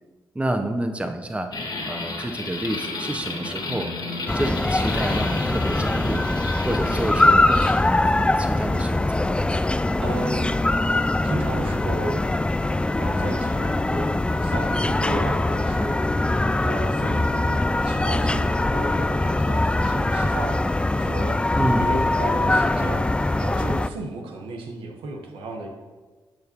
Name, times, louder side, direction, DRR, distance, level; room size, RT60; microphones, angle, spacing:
voice 1, 0.3-1.5 1.9-3.9 4.3-6.2 6.6-9.4 21.5-21.9, right 1 dB, 15° right, 6 dB, 0.8 m, -29 dB
sound 1, 1.5-7.8, left 2 dB, 55° left, 1.5 m, -32 dB
sound 2, 4.3-23.9, left 2 dB, 10° left, 0.3 m, -22 dB
voice 2, 10.0-10.6 11.2-12.2 13.0-16.0 16.6-20.6 21.0-25.7, right 2 dB, 85° right, 2 dB, 1.1 m, -34 dB
10.5 x 6.5 x 2.9 m, 1.3 s
supercardioid pair, 45°, 9 cm